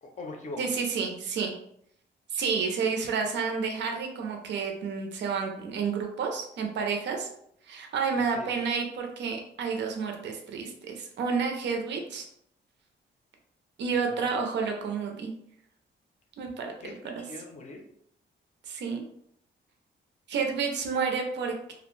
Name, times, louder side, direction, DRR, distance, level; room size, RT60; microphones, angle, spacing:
voice 1, 0.0-0.7 8.2-8.5 13.9-14.3 16.8-17.8, left 2 dB, 40° left, 2 dB, 0.5 m, -42 dB
voice 2, 0.6-1.5 2.3-7.3 7.7-12.3 13.8-15.3 16.4-16.7 17.1-17.2 18.7-19.0 20.3-21.7, right 5 dB, 65° right, 2 dB, 0.5 m, -30 dB
2.5 x 2.1 x 3.0 m, 0.71 s
wide cardioid pair, 175°, 20 cm